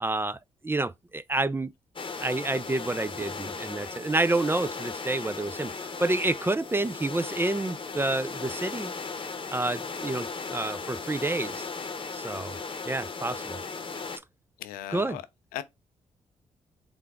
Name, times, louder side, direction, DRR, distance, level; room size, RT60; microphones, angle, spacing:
voice 1, 0.0-1.7 2.2-8.9 9.5-11.7 12.1-12.5 12.9-13.6 14.9-15.2, right 2 dB, 15° right, 0.4 m, -29 dB
sound 1, 2.0-14.2, left 4 dB, 35° left, 0.9 m, -37 dB
voice 2, 14.6-15.2 15.5-15.6, left 12 dB, 80° left, 0.5 m, -36 dB
3.8 x 3.4 x 3.5 m
hypercardioid pair, 40°, 15 cm